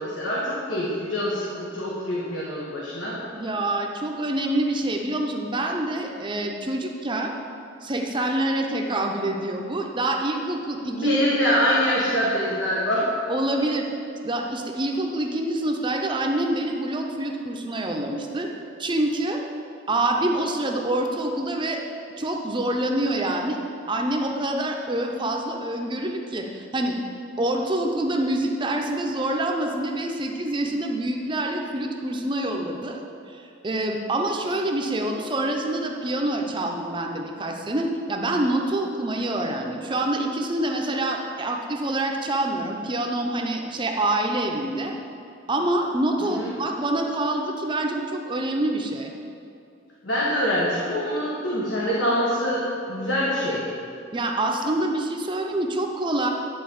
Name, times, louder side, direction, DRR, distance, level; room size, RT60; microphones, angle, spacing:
voice 1, 0.0-3.2 10.9-13.1 46.2-46.6 50.0-53.6, equal, 85° left, -6 dB, 1.5 m, -25 dB
voice 2, 3.3-7.3 7.8-11.2 13.3-13.9 14.2-18.5 18.8-19.4 19.9-21.8 22.2-23.6 23.9-27.0 27.4-33.0 33.3-44.9 45.5-49.1 54.1-56.3, right 1 dB, 25° right, 2 dB, 0.6 m, -26 dB
10.5 x 4.1 x 7.0 m, 2.5 s
head